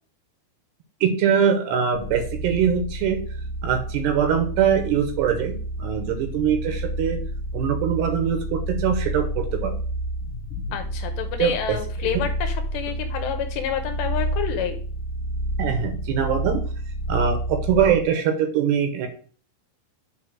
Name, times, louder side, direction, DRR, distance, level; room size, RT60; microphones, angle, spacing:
voice 1, 1.0-3.2 3.6-7.2 7.5-9.8 11.4-11.8 15.6-16.6 17.1-19.1, right 8 dB, 75° right, 5 dB, 2.7 m, -22 dB
sound 1, 1.9-18.1, right 1 dB, 65° left, 2.3 m, -30 dB
voice 2, 10.7-14.8, left 9 dB, 80° left, 6 dB, 2.8 m, -29 dB
7.8 x 3.4 x 6.1 m, 0.43 s
omnidirectional pair, 5.3 m